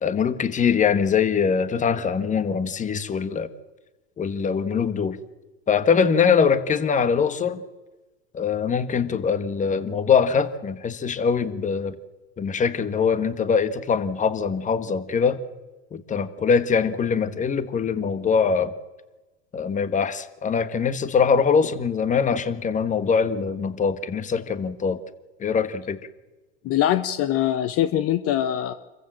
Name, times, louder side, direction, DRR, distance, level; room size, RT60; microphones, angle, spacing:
voice 1, 0.0-3.5 4.2-5.2 5.7-7.6 8.3-11.9 12.4-15.4 15.9-18.7 19.5-25.0 25.4-26.0, left 6 dB, 20° left, 13 dB, 1.4 m, -22 dB
voice 2, 26.6-28.7, left 11 dB, 45° left, 11 dB, 1.1 m, -23 dB
26.5 x 15.0 x 7.7 m, 1.2 s
supercardioid pair, 115°, 34 cm